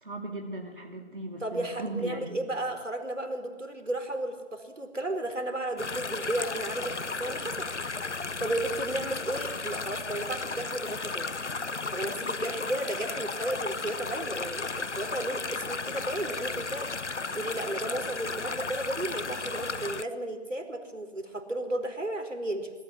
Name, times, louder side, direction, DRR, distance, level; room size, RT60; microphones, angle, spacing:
voice 1, 0.0-2.4, right 2 dB, 45° right, 1 dB, 2.8 m, -37 dB
voice 2, 1.4-7.7 8.1-11.4 11.9-16.9 17.3-22.7, right 1 dB, 90° right, 6 dB, 4.6 m, -34 dB
sound 1, 5.8-20.0, left 4 dB, 70° left, 1.0 m, -34 dB
26.0 x 22.5 x 6.3 m, 1.3 s
figure-of-eight pair, 180°, 36 cm